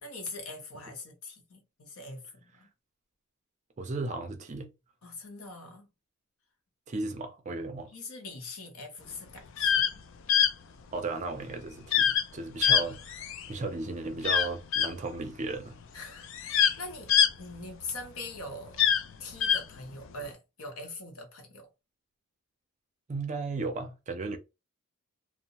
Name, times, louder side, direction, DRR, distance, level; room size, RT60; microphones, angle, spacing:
voice 1, 0.0-2.7 5.0-5.9 7.9-10.0 15.9-17.1 17.4-18.8 19.2-21.7, left 2 dB, 70° left, 0.8 m, -42 dB
voice 2, 3.8-4.7 6.9-7.9 10.9-15.8 23.1-24.4, right 3 dB, 30° right, 0.4 m, -35 dB
sound 1, 9.5-9.9 10.3-10.5 11.9-12.2 12.6-13.5 14.2-14.9 15.8-15.9 16.2-18.0 18.7-19.6, left 8 dB, 55° left, 0.3 m, -24 dB
2.7 x 2.0 x 2.8 m
head